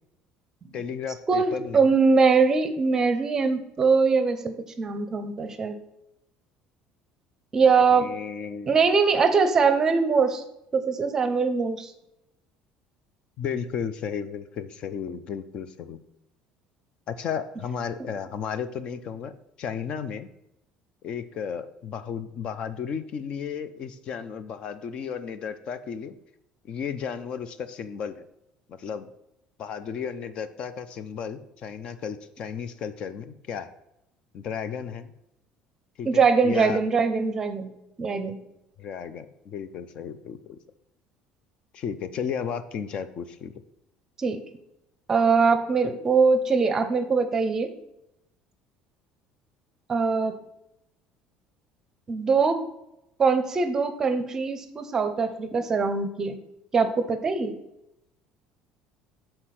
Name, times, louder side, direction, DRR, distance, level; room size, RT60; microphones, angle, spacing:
voice 1, 0.7-1.9 7.6-8.8 13.4-16.0 17.1-19.3 19.6-20.3 21.0-26.1 26.6-28.3 28.7-29.1 29.6-33.7 34.3-35.1 36.0-36.8 38.8-40.6 41.7-43.5, left 7 dB, 45° left, 12 dB, 0.6 m, -34 dB
voice 2, 1.3-5.8 7.5-8.1 8.7-10.4 10.7-11.9 36.1-37.7 38.0-38.4 44.2-44.4 45.1-47.7 49.9-50.4 52.1-52.6 53.2-56.4 56.7-57.6, right 4 dB, 25° right, 9 dB, 0.6 m, -22 dB
6.7 x 4.4 x 5.8 m, 0.85 s
cardioid pair, 150°, 2 cm